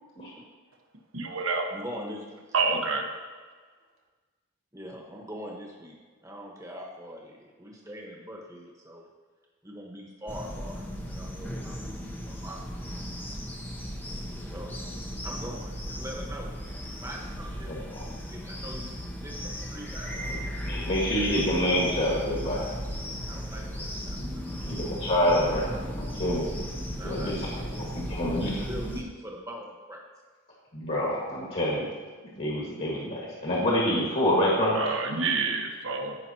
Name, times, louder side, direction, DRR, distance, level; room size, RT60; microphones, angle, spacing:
voice 1, 1.1-1.7 2.5-3.1 34.7-36.2, right 4 dB, 65° right, 3 dB, 1.1 m, -27 dB
voice 2, 1.7-2.3 4.7-9.1 9.6-10.9 11.1-11.8 12.3-12.9 14.5-14.7 15.2-16.5 16.9-18.9 19.1-19.4 19.7-20.3 23.3-24.2 24.7-24.8 27.0-27.7 28.2-28.4 28.7-30.0, equal, 15° right, 0 dB, 1.3 m, -42 dB
sound 1, 10.3-29.0, equal, 10° left, 0.8 m, -37 dB
voice 3, 17.6-18.0 20.1-20.4 20.6-22.7 24.6-25.7 26.0-26.6 27.0-28.7 30.7-31.9 32.3-34.8, equal, 40° left, -5 dB, 1.9 m, -27 dB
sound 2, 20.0-29.0, equal, 85° right, 1.5 m, -40 dB
15.5 x 5.7 x 2.9 m, 1.5 s
head